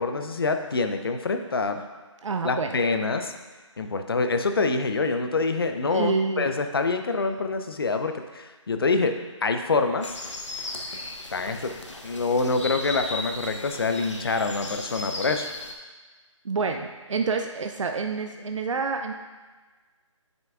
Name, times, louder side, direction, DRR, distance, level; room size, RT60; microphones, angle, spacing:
voice 1, 0.0-1.9 2.4-3.3 3.8-9.1 9.4-10.1 11.3-11.7 12.0-15.5, left 3 dB, 45° left, 7 dB, 0.5 m, -26 dB
voice 2, 2.2-2.8 5.9-6.5 16.4-19.1, right 4 dB, 70° right, 5 dB, 0.5 m, -28 dB
sound 1, 10.0-15.7, left 2 dB, 65° left, 1.0 m, -36 dB
8.9 x 5.8 x 2.4 m, 1.3 s
figure-of-eight pair, 170°, 16 cm